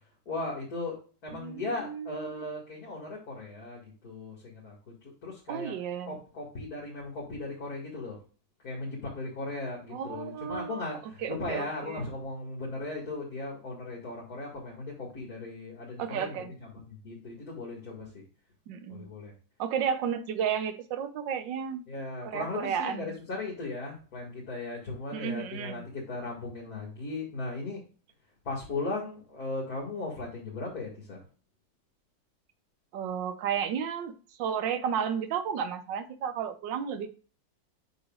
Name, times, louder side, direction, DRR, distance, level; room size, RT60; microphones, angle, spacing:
voice 1, 0.3-5.7 6.1-8.2 8.6-16.3 16.6-18.2 18.9-19.3 21.9-27.8 28.5-31.2, left 2 dB, 55° left, -4 dB, 2.5 m, -37 dB
voice 2, 1.3-2.4 5.5-6.2 9.9-10.8 11.2-12.0 16.0-16.5 18.7-19.1 19.6-21.8 22.2-23.1 25.1-25.8 32.9-34.1 34.4-37.1, right 8 dB, 75° right, 9 dB, 1.5 m, -33 dB
8.2 x 6.2 x 2.5 m, 0.37 s
omnidirectional pair, 2.0 m